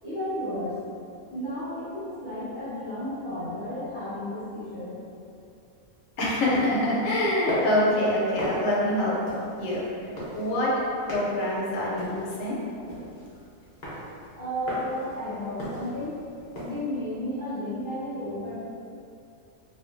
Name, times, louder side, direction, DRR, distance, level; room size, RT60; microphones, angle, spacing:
voice 1, 0.0-0.8 1.3-5.0 14.3-18.5, left 1 dB, 10° left, -14 dB, 0.7 m, -33 dB
voice 2, 6.2-9.1 9.6-9.8 10.3-10.7 11.1-12.6, left 1 dB, 70° left, -6 dB, 0.9 m, -25 dB
sound 1, 6.5-16.8, equal, 50° left, 0.6 m, -38 dB
2.5 x 2.4 x 2.5 m, 2.6 s
omnidirectional pair, 1.6 m